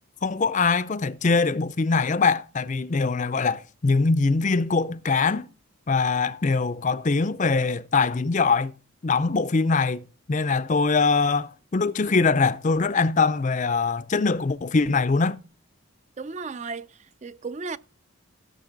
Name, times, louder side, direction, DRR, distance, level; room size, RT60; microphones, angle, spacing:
voice 1, 0.2-5.5 5.9-8.7 9.0-15.4, left 4 dB, 35° left, 0.5 m, -23 dB
voice 2, 16.2-17.8, right 4 dB, 30° right, 0.4 m, -35 dB
16.0 x 6.6 x 3.9 m
head